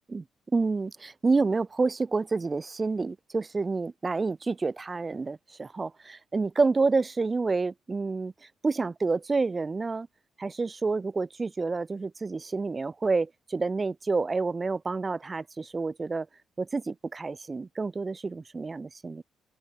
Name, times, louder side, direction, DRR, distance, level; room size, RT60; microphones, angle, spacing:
voice 1, 0.5-8.3 8.6-10.1 10.4-16.3 16.6-19.2, right 4 dB, 30° right, 5.7 m, -28 dB
open air
cardioid pair, 90°, 0 cm